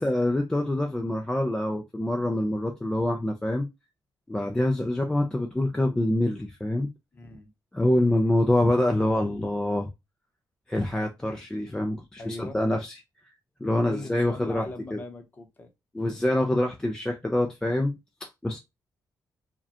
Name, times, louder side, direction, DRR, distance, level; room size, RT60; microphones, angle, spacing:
voice 1, 0.0-3.7 4.3-6.9 7.7-9.9 10.7-13.0 13.6-14.6 14.9-15.0 15.9-17.9 18.2-18.6, left 1 dB, 10° left, 0.4 m, -25 dB
voice 2, 7.1-7.5 12.2-12.6 13.7-15.7, left 2 dB, 25° left, 0.8 m, -40 dB
4.8 x 2.2 x 2.8 m
wide cardioid pair, 170°, 7 cm